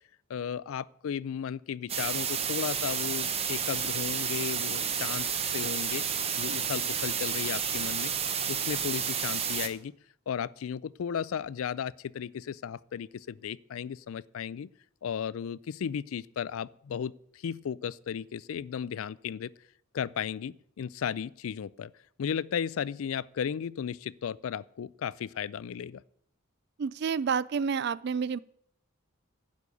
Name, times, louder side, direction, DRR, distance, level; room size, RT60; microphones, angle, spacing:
voice 1, 0.3-6.0 6.4-8.1 8.5-9.9 10.3-14.7 15.0-19.5 19.9-21.9 22.2-26.0, left 8 dB, 80° left, 0.4 m, -35 dB
sound 1, 1.9-9.7, right 7 dB, 30° right, 0.8 m, -31 dB
voice 2, 26.8-28.4, right 6 dB, 50° right, 0.3 m, -29 dB
11.0 x 5.3 x 8.3 m
head